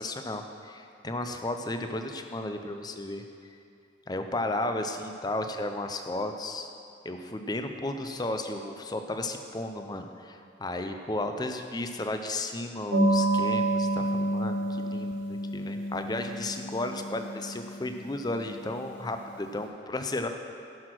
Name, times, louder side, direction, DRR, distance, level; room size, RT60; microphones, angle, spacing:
voice 1, 0.0-3.2 4.1-6.7 7.0-20.3, left 2 dB, 20° left, 6 dB, 0.5 m, -34 dB
sound 1, 12.9-19.1, right 1 dB, 85° right, 2.6 m, -29 dB
12.0 x 6.2 x 6.1 m, 2.5 s
head